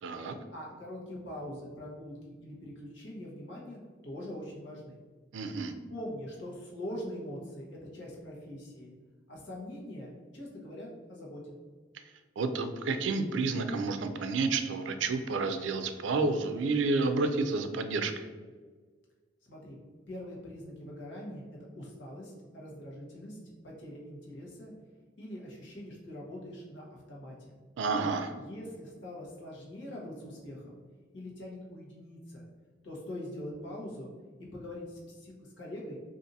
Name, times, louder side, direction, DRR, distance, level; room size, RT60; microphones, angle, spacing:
voice 1, 0.0-0.3 5.3-5.7 12.4-18.1 27.8-28.3, right 3 dB, 75° right, 8 dB, 0.4 m, -30 dB
voice 2, 0.5-5.0 5.9-8.9 9.3-11.4 19.4-19.8 20.1-21.4 21.7-23.4 23.6-24.7 25.2-27.6 28.3-30.8 31.1-32.4 32.8-34.1 34.5-36.0, left 1 dB, 65° left, -3 dB, 1.0 m, -43 dB
2.6 x 2.5 x 4.0 m, 1.5 s
head